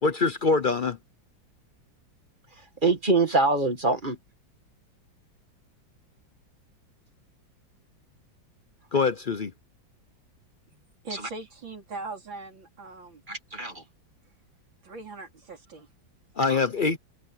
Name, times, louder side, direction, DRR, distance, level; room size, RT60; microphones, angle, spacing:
voice 1, 0.0-1.0 8.9-9.5 16.4-17.0, left 4 dB, 60° left, 0.5 m, -24 dB
voice 2, 2.5-4.2 11.1-11.3 13.3-13.8 16.5-16.6, right 3 dB, 25° right, 2.0 m, -25 dB
voice 3, 10.7-13.2 14.8-15.9, right 3 dB, 75° right, 4.8 m, -41 dB
omnidirectional pair, 2.1 m